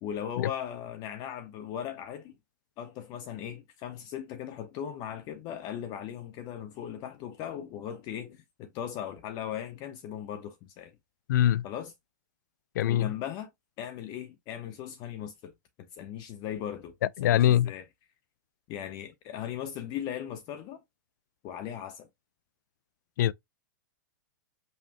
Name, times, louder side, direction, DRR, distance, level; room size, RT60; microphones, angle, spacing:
voice 1, 0.0-2.3 2.8-10.9 11.6-11.9 12.9-13.5 13.8-15.5 15.8-16.9 17.2-17.8 18.7-20.8 21.4-22.1, left 10 dB, 40° left, 0.7 m, -38 dB
voice 2, 11.3-11.6 12.8-13.1 17.2-17.7 23.2-23.3, left 11 dB, 65° left, 0.4 m, -23 dB
5.5 x 2.2 x 2.9 m
hypercardioid pair, 110°, 11 cm